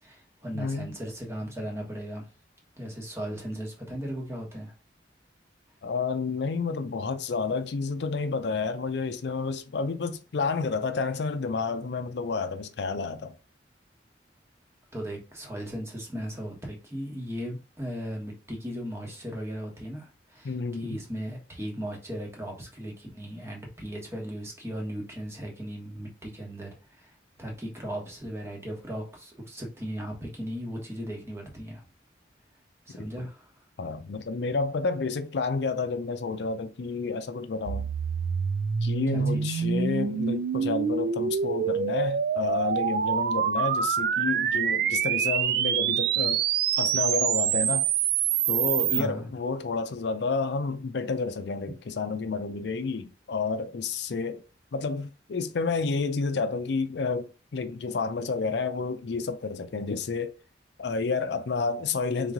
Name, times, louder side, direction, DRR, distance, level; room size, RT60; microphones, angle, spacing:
voice 1, 0.0-2.3 2.8-4.7 14.9-31.8 32.9-33.5 39.1-39.6 48.9-49.3, equal, 15° right, 1.2 m, -37 dB
voice 2, 0.5-0.9 5.8-13.3 20.4-21.0 33.0-33.1 33.8-37.9 38.8-46.4 46.8-47.9 48.5-54.4 54.7-60.3 60.8-62.3, left 4 dB, 70° left, 0.5 m, -30 dB
sound 1, 37.7-49.0, right 7 dB, 60° right, 0.3 m, -26 dB
3.7 x 3.1 x 3.7 m
head